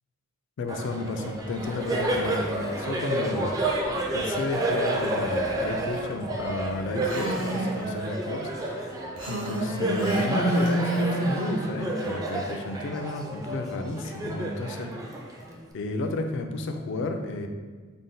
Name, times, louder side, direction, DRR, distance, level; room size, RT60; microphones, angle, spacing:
voice 1, 0.6-8.9 9.3-14.9 15.7-17.5, left 2 dB, 60° left, 6 dB, 0.4 m, -32 dB
Laughter, 0.7-15.7, right 1 dB, 15° right, 0.3 m, -30 dB
Female speech woman speaking, 7.0-7.7 9.2-11.4, right 1 dB, 85° right, 0.9 m, -28 dB
3.8 x 2.1 x 3.8 m, 1.5 s
head